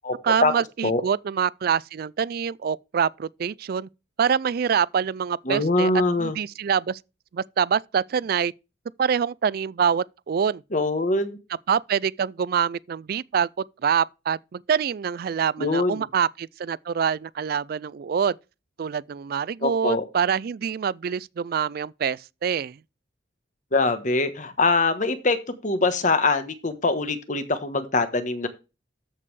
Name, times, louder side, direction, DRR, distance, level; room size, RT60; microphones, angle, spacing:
voice 1, 0.2-3.9 4.2-5.9 6.2-7.0 7.3-8.5 9.0-10.6 11.7-18.3 18.8-22.8, right 7 dB, 55° right, 0.3 m, -25 dB
voice 2, 5.5-6.4 10.7-11.4 15.6-16.0 19.6-20.0 23.7-25.4 25.6-28.5, left 3 dB, 45° left, 1.3 m, -23 dB
13.5 x 5.3 x 3.3 m
head